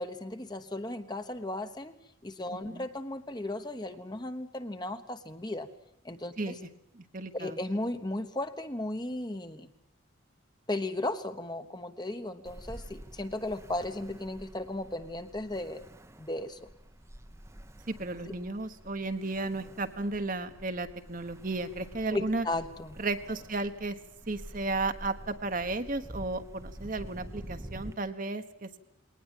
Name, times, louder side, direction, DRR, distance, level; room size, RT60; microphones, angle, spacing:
voice 1, 0.0-2.0 2.2-5.7 6.0-6.6 7.3-9.7 10.7-15.8 16.2-16.6 22.1-23.0, left 1 dB, 20° left, 8 dB, 1.1 m, -35 dB
voice 2, 6.9-7.6 17.9-22.5 23.0-24.0 24.3-28.8, right 2 dB, 40° right, 8 dB, 1.2 m, -34 dB
Ocean, 12.5-27.9, right 1 dB, 15° right, 0.9 m, -48 dB
21.0 x 19.0 x 9.1 m, 0.72 s
head